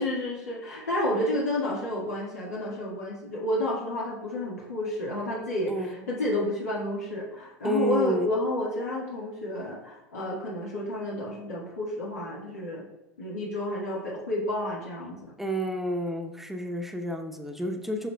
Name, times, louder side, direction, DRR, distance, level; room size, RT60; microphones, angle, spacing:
voice 1, 0.0-12.8 13.2-15.3, left 1 dB, 85° left, -5 dB, 1.7 m, -30 dB
voice 2, 7.6-8.3 15.4-18.1, right 1 dB, 5° right, 3 dB, 0.8 m, -29 dB
9.9 x 5.9 x 2.3 m, 0.98 s
hypercardioid pair, 90°, 8 cm